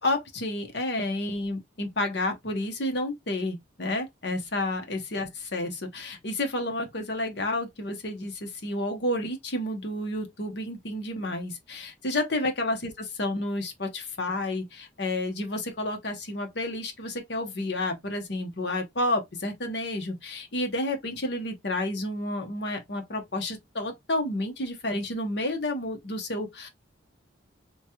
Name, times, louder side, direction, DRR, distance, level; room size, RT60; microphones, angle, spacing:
voice 1, 0.0-26.7, left 1 dB, 60° left, 0.9 m, -30 dB
3.1 x 2.3 x 2.8 m
head